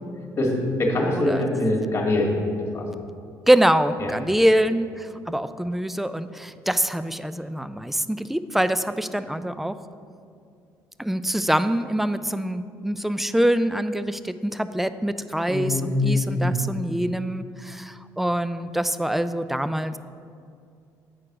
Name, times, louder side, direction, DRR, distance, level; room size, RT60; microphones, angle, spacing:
voice 1, 0.4-2.3 2.7-2.9 4.0-4.1 15.5-16.7, left 1 dB, 35° left, -2 dB, 1.8 m, -23 dB
voice 2, 1.1-1.5 3.5-9.7 11.0-20.0, right 1 dB, 5° right, 12 dB, 0.3 m, -24 dB
8.8 x 4.7 x 4.8 m, 2.4 s
cardioid pair, 90°, 8 cm